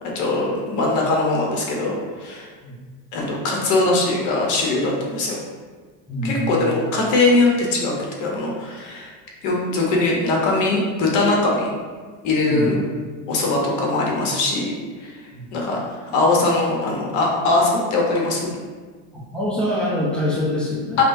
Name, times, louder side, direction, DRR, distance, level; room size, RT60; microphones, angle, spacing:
voice 1, 0.0-2.5 3.1-5.4 6.2-7.9 8.2-9.1 9.4-11.7 12.2-12.8 13.3-14.7 15.0-15.2 15.5-18.5 21.0-21.1, left 2 dB, 40° left, -1 dB, 0.9 m, -21 dB
voice 2, 6.1-6.7 12.4-12.7 15.3-15.4 19.3-21.0, left 1 dB, ahead, -7 dB, 0.6 m, -24 dB
5.7 x 2.1 x 2.6 m, 1.5 s
supercardioid pair, 155°, 44 cm